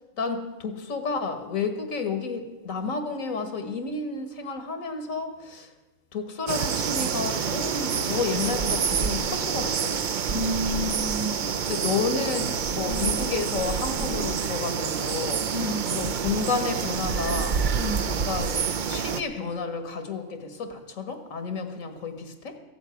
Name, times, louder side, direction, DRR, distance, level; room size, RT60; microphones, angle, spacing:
voice 1, 0.2-5.7 6.1-10.1 11.7-15.6 15.9-18.6 18.9-22.5, left 4 dB, 80° left, 7 dB, 1.9 m, -31 dB
sound 1, 6.5-19.2, right 6 dB, 50° right, 0.6 m, -27 dB
voice 2, 10.3-11.6 12.9-13.2 14.0-14.2 15.5-15.9 17.8-18.1, equal, 20° right, 6 dB, 1.2 m, -31 dB
15.5 x 8.1 x 9.2 m, 1.1 s
omnidirectional pair, 1.4 m